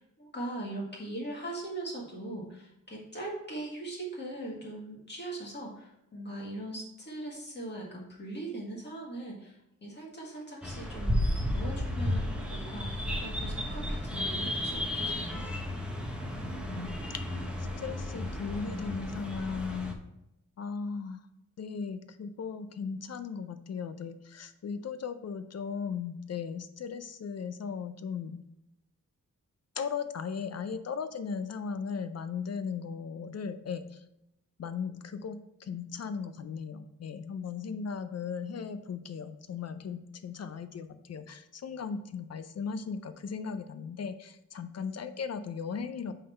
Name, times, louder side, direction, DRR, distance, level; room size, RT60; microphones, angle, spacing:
voice 1, 0.0-12.9 13.2-15.4, right 1 dB, 35° left, -2 dB, 1.7 m, -40 dB
sound 1, 10.6-19.9, left 1 dB, 5° right, 0.7 m, -33 dB
voice 2, 17.8-20.0 20.6-21.2 21.6-28.4 29.8-34.0 34.6-46.1, left 6 dB, 50° left, 11 dB, 0.5 m, -37 dB
5.4 x 3.7 x 5.5 m, 0.85 s
wide cardioid pair, 150°, 32 cm